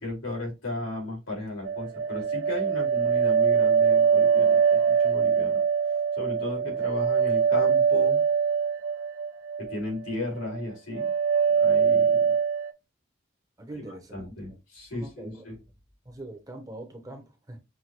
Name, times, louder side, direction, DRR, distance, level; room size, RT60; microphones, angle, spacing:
voice 1, 0.0-5.6 6.2-8.2 9.6-11.1 11.6-12.3 13.9-15.6, left 2 dB, 85° left, 2.6 m, -35 dB
sound 1, 1.6-9.8 10.1-10.6 10.9-12.7, right 6 dB, 65° right, 0.4 m, -23 dB
voice 2, 13.6-14.6 14.9-15.5 16.1-17.6, right 1 dB, 15° right, 0.6 m, -43 dB
5.9 x 2.3 x 2.7 m
head